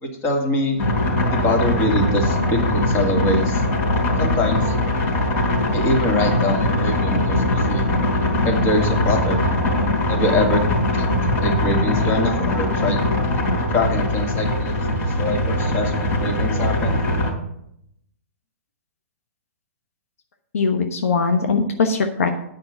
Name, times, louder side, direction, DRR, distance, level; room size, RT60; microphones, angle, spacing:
voice 1, 0.0-0.8 1.3-3.6 4.2-4.7 5.7-7.8 8.4-9.5 10.1-10.6 10.9-11.1 11.4-13.1 13.7-14.8 15.2-17.0, left 1 dB, 30° left, 3 dB, 2.4 m, -23 dB
sound 1, 0.8-17.3, left 1 dB, 50° left, 3.9 m, -21 dB
voice 2, 20.5-22.3, left 4 dB, 75° left, 6 dB, 1.1 m, -20 dB
9.1 x 5.5 x 8.0 m, 0.76 s
hypercardioid pair, 125°, 8 cm